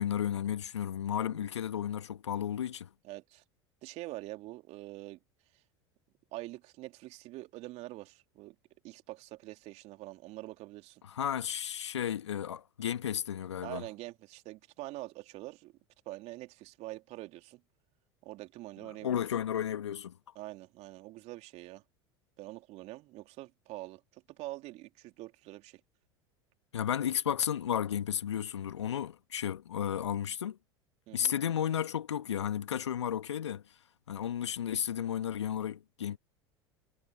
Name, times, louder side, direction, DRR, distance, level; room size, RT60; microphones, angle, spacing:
voice 1, 0.0-2.9 11.1-13.8 18.9-20.2 26.7-30.6 31.1-33.6 34.1-36.2, left 9 dB, 80° left, 1.6 m, -33 dB
voice 2, 3.0-3.4 3.8-5.2 6.3-8.5 8.8-11.0 13.6-15.7 16.0-17.6 18.2-19.2 20.3-21.8 22.4-25.8 31.1-31.3, right 18 dB, 50° right, 3.1 m, -45 dB
figure-of-eight pair, 80°, 15 cm